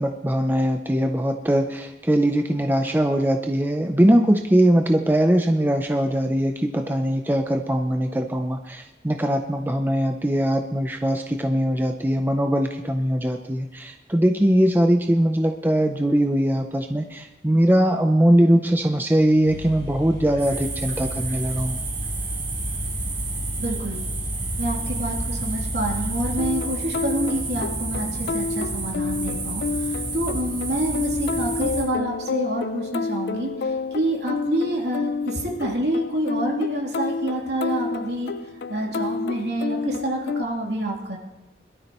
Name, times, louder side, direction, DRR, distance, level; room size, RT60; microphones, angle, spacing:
voice 1, 0.0-21.8, right 1 dB, 10° right, 5 dB, 0.5 m, -21 dB
sound 1, 19.4-27.3, left 1 dB, 20° left, 6.2 m, -34 dB
sound 2, 20.4-31.8, right 3 dB, 35° right, 4.0 m, -31 dB
voice 2, 23.6-24.0 24.6-38.3 38.7-41.2, right 1 dB, 70° right, -2 dB, 3.0 m, -27 dB
sound 3, 26.4-40.4, left 4 dB, 65° left, 0.4 m, -30 dB
22.0 x 12.5 x 3.0 m, 1.0 s
head